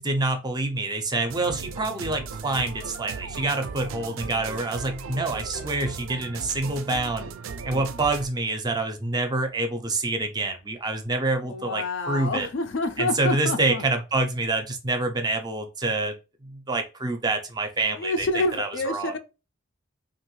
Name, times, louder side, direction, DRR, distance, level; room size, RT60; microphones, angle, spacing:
voice 1, 0.0-7.3 7.6-12.5 13.0-16.2 16.4-19.1, right 2 dB, 20° right, 0.4 m, -27 dB
sound 1, 1.3-8.3, right 5 dB, 90° right, 0.4 m, -37 dB
voice 2, 11.5-13.8 18.0-19.2, left 2 dB, 65° left, 0.4 m, -28 dB
3.0 x 2.5 x 3.0 m
head